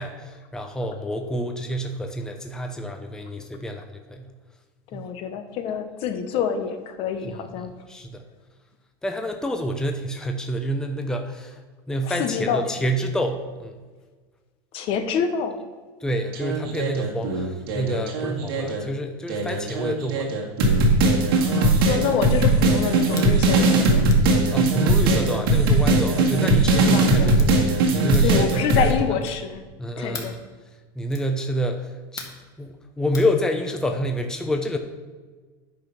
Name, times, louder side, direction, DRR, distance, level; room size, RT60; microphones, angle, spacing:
voice 1, 0.0-4.2 4.9-5.1 7.6-8.2 9.0-11.6 11.9-13.8 16.0-20.3 20.7-20.8 24.5-28.9 29.8-30.4 31.0-32.3 32.6-34.8, equal, 5° left, 4 dB, 0.7 m, -28 dB
voice 2, 4.9-7.7 12.1-12.7 14.7-15.6 21.4-24.1 26.9-27.4 28.2-29.6 30.0-30.4, left 7 dB, 50° left, 9 dB, 1.0 m, -27 dB
sound 1, 16.3-18.8 19.3-28.9, right 2 dB, 85° right, 1.9 m, -20 dB
sound 2, 23.1-23.3 24.1-24.3 25.1-25.3 26.1-26.4 27.1-27.5 28.1-28.4 29.2-29.5 30.1-30.4 31.1-31.3 32.2-32.5 33.1-33.3, left 4 dB, 30° left, 1.6 m, -39 dB
9.6 x 5.2 x 5.9 m, 1.4 s
supercardioid pair, 125°, 12 cm